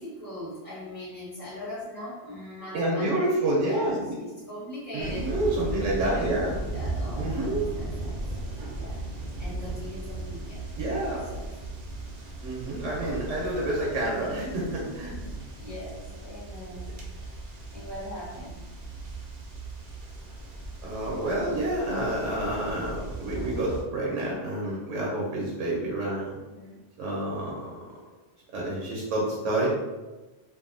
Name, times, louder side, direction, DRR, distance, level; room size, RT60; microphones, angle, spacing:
voice 1, 0.0-3.2 3.6-3.9 4.2-5.3 6.0-8.4 8.7-9.0 9.4-10.6 11.3-11.5 14.4-16.9 17.7-18.6 20.4-20.6 26.5-26.9, left 1 dB, 15° left, -9 dB, 1.1 m, -40 dB
voice 2, 2.7-4.2 4.9-6.5 7.2-7.6 8.6-8.7 10.8-11.2 12.4-15.1 20.8-26.4 27.0-27.7 28.5-29.7, right 1 dB, 85° right, -4 dB, 1.0 m, -28 dB
sound 1, 5.0-23.8, right 2 dB, 55° right, 0.6 m, -37 dB
2.6 x 2.5 x 2.5 m, 1.1 s
omnidirectional pair, 1.2 m